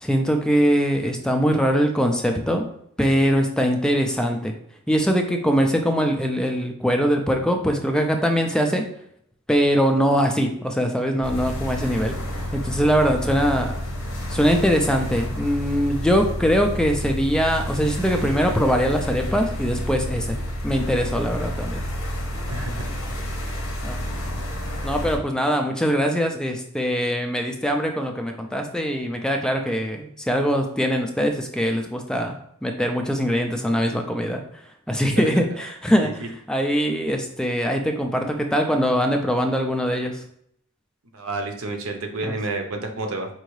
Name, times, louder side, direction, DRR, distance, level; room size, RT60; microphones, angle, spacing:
voice 1, 0.0-2.7 3.0-4.5 4.9-8.8 9.5-12.2 12.5-13.7 14.3-20.4 20.6-21.8 22.8-22.9 23.8-24.0 24.8-34.4 34.9-40.2 42.2-42.4, equal, 5° left, 3 dB, 0.3 m, -22 dB
sound 1, 11.2-25.2, equal, 60° left, 0.8 m, -30 dB
voice 2, 22.5-23.6 35.2-35.4 36.0-36.3 41.1-43.3, right 2 dB, 80° right, 4 dB, 0.7 m, -31 dB
4.7 x 2.6 x 3.1 m, 0.71 s
head